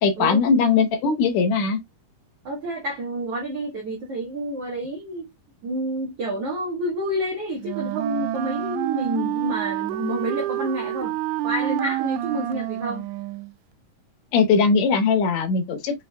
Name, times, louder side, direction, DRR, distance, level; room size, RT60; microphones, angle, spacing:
voice 1, 0.0-1.8 14.3-16.0, left 5 dB, 60° left, 2.1 m, -20 dB
voice 2, 2.4-5.3 5.6-11.2 11.4-13.1, right 1 dB, 55° right, 1.9 m, -29 dB
Wind instrument woodwind instrument, 7.6-13.5, right 13 dB, 85° right, 1.8 m, -28 dB
6.3 x 3.5 x 2.2 m
omnidirectional pair, 4.1 m